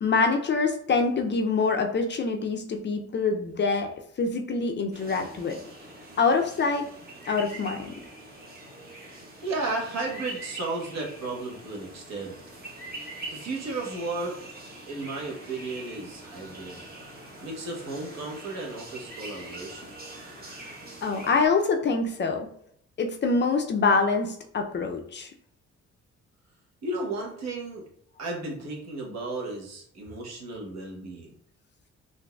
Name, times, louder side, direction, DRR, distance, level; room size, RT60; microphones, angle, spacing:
voice 1, 0.0-3.9 4.2-5.6 6.2-6.9 7.3-7.9 21.0-22.5 23.0-25.3, left 4 dB, 35° left, 4 dB, 0.5 m, -25 dB
sound 1, 4.9-21.5, right 2 dB, 30° right, 1.0 m, -43 dB
voice 2, 9.4-12.4 13.3-14.4 14.9-16.8 17.4-20.0 26.8-27.9 28.2-31.3, right 2 dB, 60° right, -1 dB, 1.1 m, -34 dB
3.8 x 2.5 x 2.3 m, 0.66 s
cardioid pair, 90°, 30 cm